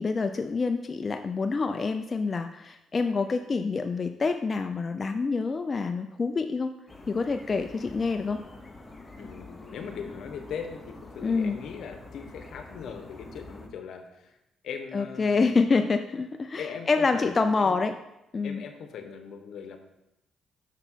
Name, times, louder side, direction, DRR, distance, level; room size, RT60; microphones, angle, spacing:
voice 1, 0.0-6.7 7.1-8.4 11.2-11.6 14.9-17.9 18.3-18.6, left 4 dB, 35° left, 7 dB, 0.4 m, -27 dB
sound 1, 6.9-13.7, left 2 dB, 20° left, 1.0 m, -46 dB
voice 2, 9.2-14.4 14.6-15.7 16.6-17.8 18.4-19.8, left 6 dB, 70° left, 6 dB, 1.0 m, -40 dB
6.6 x 6.0 x 4.5 m, 0.88 s
cardioid pair, 90°, 0 cm